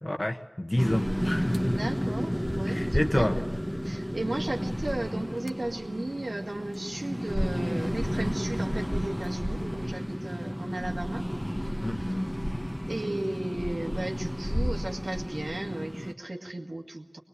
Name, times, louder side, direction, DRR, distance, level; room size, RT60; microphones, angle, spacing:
voice 1, 0.0-1.9 2.7-3.4 11.8-12.5, left 1 dB, 35° left, 6 dB, 1.6 m, -29 dB
sound 1, 0.8-16.1, equal, ahead, 1.3 m, -31 dB
voice 2, 1.1-3.4 3.8-11.2 12.9-17.2, right 2 dB, 70° right, 3 dB, 2.0 m, -35 dB
22.5 x 21.0 x 8.4 m, 1.0 s
wide cardioid pair, 45°, 0 cm